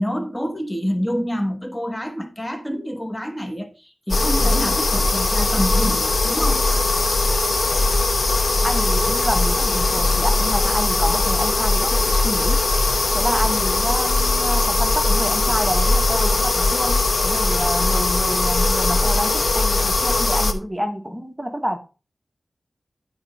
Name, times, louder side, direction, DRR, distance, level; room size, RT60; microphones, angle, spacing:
voice 1, 0.0-6.7, equal, 10° left, 1.1 m, -27 dB
sound 1, 4.1-20.5, left 2 dB, 65° left, 1.1 m, -20 dB
voice 2, 8.6-12.6 13.1-21.8, equal, 10° right, 1.2 m, -28 dB
11.5 x 5.0 x 4.1 m
wide cardioid pair, 70°, 0 cm